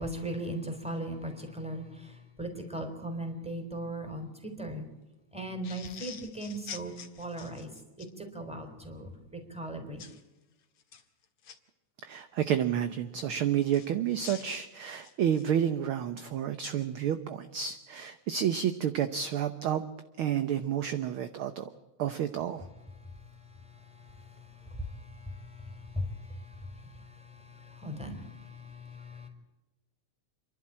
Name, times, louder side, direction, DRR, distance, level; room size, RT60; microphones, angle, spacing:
voice 1, 0.0-4.9 5.3-7.7 8.0-10.0 23.0-29.3, right 1 dB, ahead, 5 dB, 3.7 m, -39 dB
sound 1, 5.6-8.1 10.0-10.2 10.8-11.6 13.7-15.6, left 7 dB, 55° left, 2.4 m, -46 dB
voice 2, 12.0-19.8 20.2-21.7 22.0-22.7, right 9 dB, 65° right, 10 dB, 1.4 m, -30 dB
29.0 x 11.5 x 8.7 m, 1.1 s
omnidirectional pair, 3.3 m